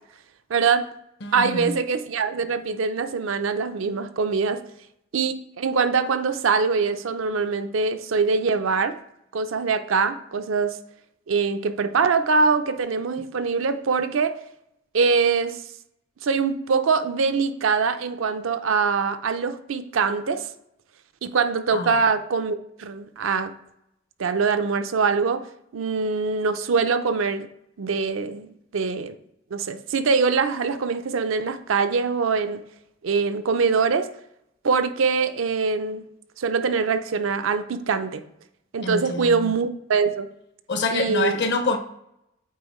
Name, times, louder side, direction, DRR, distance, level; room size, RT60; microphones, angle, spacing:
voice 1, 0.5-0.9 1.3-4.6 5.1-9.0 9.3-10.8 11.3-14.4 14.9-15.6 16.2-20.5 21.2-23.5 24.2-25.4 25.7-27.5 27.8-29.2 29.5-32.6 33.0-34.1 34.6-36.1 36.4-38.2 38.7-40.3 40.9-41.4, right 5 dB, 75° right, 9 dB, 0.5 m, -23 dB
voice 2, 1.2-1.8 21.7-22.0 38.8-39.5 40.7-41.8, left 3 dB, 60° left, 7 dB, 0.7 m, -26 dB
8.4 x 4.3 x 3.1 m, 0.79 s
head